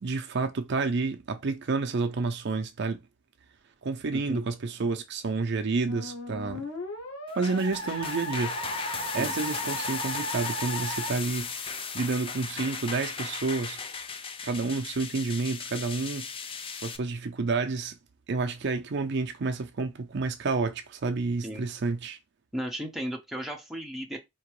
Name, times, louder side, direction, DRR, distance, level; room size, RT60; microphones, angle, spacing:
voice 1, 0.0-3.0 3.8-6.7 7.4-8.6 9.1-13.8 14.4-16.3 16.8-17.9 18.3-22.2, right 4 dB, 55° right, 0.5 m, -30 dB
voice 2, 4.1-4.4 9.2-9.3 21.4-21.7 22.5-24.2, equal, ahead, 0.9 m, -35 dB
Musical instrument, 5.9-11.1, equal, 90° left, 1.5 m, -36 dB
sound 1, 7.3-17.0, left 5 dB, 25° left, 0.4 m, -36 dB
4.5 x 2.9 x 3.0 m
head